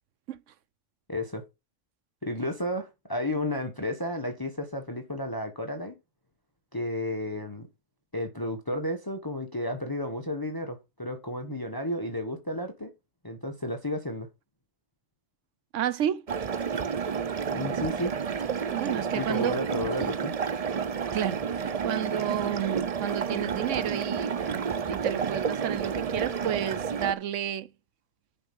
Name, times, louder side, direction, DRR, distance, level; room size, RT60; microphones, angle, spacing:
voice 1, 1.1-1.4 2.2-6.0 6.7-7.7 8.1-12.9 13.2-14.3 17.5-18.1 19.1-20.3, left 1 dB, 20° left, 1.3 m, -32 dB
voice 2, 15.7-16.3 18.7-19.6 20.0-20.1 21.1-27.7, right 10 dB, 85° right, 1.1 m, -31 dB
sound 1, 16.3-27.1, right 6 dB, 40° right, 0.6 m, -30 dB
10.0 x 4.7 x 5.4 m
omnidirectional pair, 1.2 m